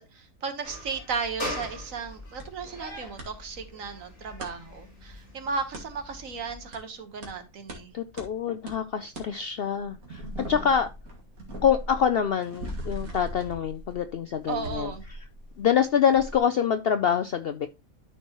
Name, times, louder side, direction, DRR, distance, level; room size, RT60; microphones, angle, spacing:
voice 1, 0.0-7.9 14.5-15.0, right 5 dB, 70° right, 1.6 m, -35 dB
sound 1, 0.6-6.7, equal, 45° left, 5.5 m, -41 dB
sound 2, 1.6-1.7 2.4-2.5 2.8-3.3 4.4-4.5 5.7-5.9 6.7-6.8 7.2-7.3 7.7-7.8 8.2-8.3 8.7-8.8 9.1-9.3 9.7-15.8 16.1-16.4, right 1 dB, 90° right, 2.2 m, -39 dB
voice 2, 7.9-10.9 11.6-15.2 15.6-17.7, left 8 dB, 65° left, 0.6 m, -26 dB
12.5 x 4.4 x 2.9 m
omnidirectional pair, 1.5 m